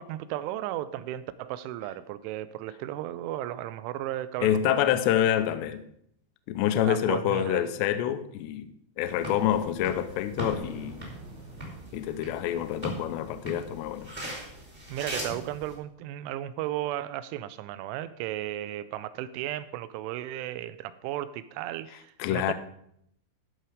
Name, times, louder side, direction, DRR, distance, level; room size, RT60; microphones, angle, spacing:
voice 1, 0.0-5.0 6.8-7.6 14.9-22.5, right 13 dB, 85° right, 3.0 m, -35 dB
voice 2, 4.4-5.8 6.5-11.0 11.9-14.1 22.2-22.5, left 11 dB, 80° left, 2.6 m, -27 dB
sound 1, 9.1-15.7, equal, 15° right, 1.9 m, -40 dB
sound 2, 10.4-15.7, right 3 dB, 65° right, 2.0 m, -47 dB
14.0 x 5.7 x 5.0 m
omnidirectional pair, 5.5 m